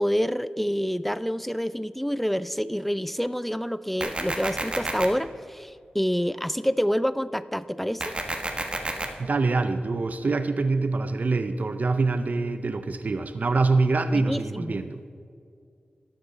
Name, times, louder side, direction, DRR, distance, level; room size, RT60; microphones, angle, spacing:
voice 1, 0.0-8.1 14.1-14.8, equal, 5° left, 16 dB, 0.3 m, -27 dB
sound 1, 4.0-5.1 8.0-9.1, right 2 dB, 35° right, 1.3 m, -30 dB
voice 2, 9.2-15.0, right 3 dB, 55° right, 10 dB, 0.5 m, -25 dB
12.5 x 8.7 x 4.0 m, 2.4 s
cardioid pair, 50°, 3 cm